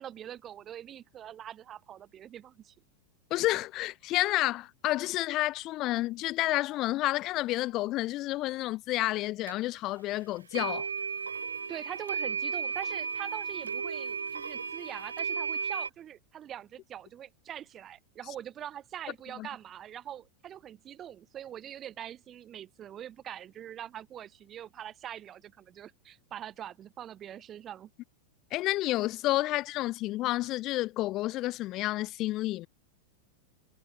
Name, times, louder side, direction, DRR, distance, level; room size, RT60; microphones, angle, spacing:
voice 1, 0.0-2.7 11.7-27.9, right 10 dB, 30° right, 1.6 m, -43 dB
voice 2, 3.3-10.9 19.4-19.5 28.5-32.7, left 17 dB, 35° left, 0.8 m, -30 dB
sound 1, 9.5-9.6 10.5-15.9, right 5 dB, 75° right, 1.3 m, -34 dB
figure-of-eight pair, 90°, 0 cm